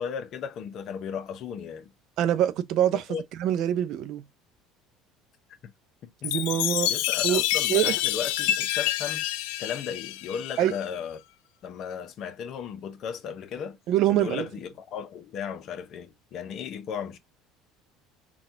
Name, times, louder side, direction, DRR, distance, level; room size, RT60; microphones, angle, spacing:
voice 1, 0.0-1.9 2.9-3.2 5.6-5.7 6.0-6.3 6.9-9.2 9.6-11.2 11.6-13.8 14.1-17.2, left 7 dB, 50° left, 0.7 m, -35 dB
voice 2, 2.2-3.0 3.4-4.2 6.2-6.9 7.2-7.4 7.7-7.9 10.6-10.7 13.9-14.5, right 11 dB, 60° right, 0.4 m, -24 dB
Chime, 6.2-10.8, left 14 dB, 85° left, 0.3 m, -28 dB
4.0 x 2.3 x 2.6 m
cardioid pair, 125°, 0 cm